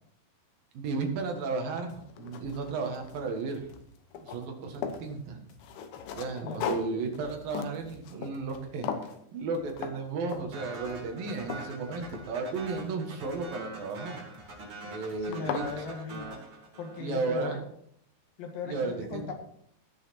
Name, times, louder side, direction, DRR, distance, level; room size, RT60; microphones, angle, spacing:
voice 1, 0.7-3.6 4.2-5.4 6.2-8.9 9.3-14.2 14.9-15.8 17.0-17.6 18.6-19.3, right 3 dB, 70° right, 3 dB, 3.3 m, -34 dB
sound 1, 1.4-1.5 2.0-3.4 3.7-5.1 5.6-8.6 8.8-9.2 9.8-10.0 10.3-10.7 11.1-12.7 14.1-14.5 15.0-15.1 15.3-15.7, left 7 dB, 90° left, 3.0 m, -38 dB
sound 2, 1.9-16.3, left 5 dB, 55° left, 1.7 m, -57 dB
sound 3, 10.5-17.2, right 2 dB, 40° right, 3.9 m, -44 dB
voice 2, 15.2-16.4 16.8-17.6 18.4-19.3, left 5 dB, 75° left, 4 dB, 3.3 m, -38 dB
16.5 x 6.7 x 4.3 m, 0.70 s
omnidirectional pair, 4.2 m